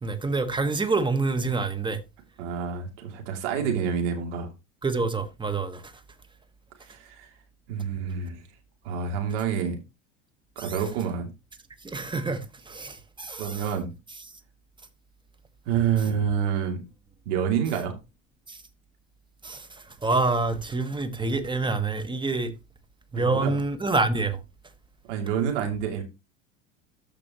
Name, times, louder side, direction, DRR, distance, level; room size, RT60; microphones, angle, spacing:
voice 1, 0.0-2.0 4.8-5.9 10.6-10.7 11.8-13.6 18.5-18.6 19.4-22.5 23.1-24.4, right 3 dB, 10° right, 1.3 m, -27 dB
voice 2, 2.4-4.5 6.8-7.3 7.7-8.4 8.8-9.8 10.6-11.3 13.4-13.9 15.7-16.8 17.3-17.9 23.1-23.5 25.1-26.0, right 7 dB, 65° right, 2.8 m, -28 dB
13.5 x 5.2 x 3.0 m
hypercardioid pair, 75°, 39 cm